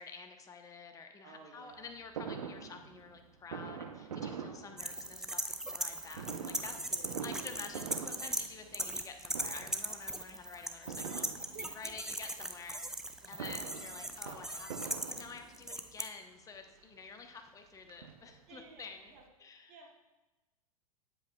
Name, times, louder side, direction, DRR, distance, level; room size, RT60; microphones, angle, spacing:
voice 1, 0.0-5.4 5.7-12.8 13.3-19.1 19.4-19.8, left 5 dB, 20° left, 5 dB, 0.8 m, -50 dB
voice 2, 1.2-1.9 4.9-5.0 6.7-7.1 7.6-7.8 11.5-12.0 13.2-13.5 18.5-19.2 19.7-19.9, right 4 dB, 45° right, 0 dB, 1.4 m, -54 dB
Fireworks, 2.2-5.4 6.1-9.1 9.3-9.9 10.9-12.0 13.1-15.8 16.5-16.6 16.9-17.0 17.4-18.6 18.9-19.0 19.2-19.3, right 6 dB, 80° right, 0.7 m, -44 dB
sound 1, 4.8-8.5 8.7-16.0, right 1 dB, 5° right, 0.3 m, -38 dB
9.2 x 7.6 x 2.2 m, 1.1 s
hypercardioid pair, 105°, 18 cm